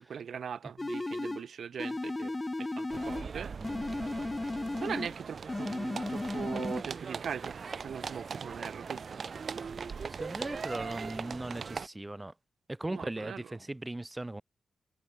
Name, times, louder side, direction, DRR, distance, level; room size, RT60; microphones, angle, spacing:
voice 1, 0.0-3.5 4.8-9.2 12.9-13.5, right 7 dB, 75° right, 3.6 m, -40 dB
sound 1, 0.8-1.5 1.8-3.3 3.6-5.2 5.5-6.8, left 2 dB, 20° left, 0.9 m, -35 dB
sound 2, 2.9-11.9, right 5 dB, 55° right, 6.1 m, -40 dB
voice 2, 10.1-12.3 12.7-14.4, right 2 dB, 15° right, 1.3 m, -38 dB
wide cardioid pair, 115°, 0 cm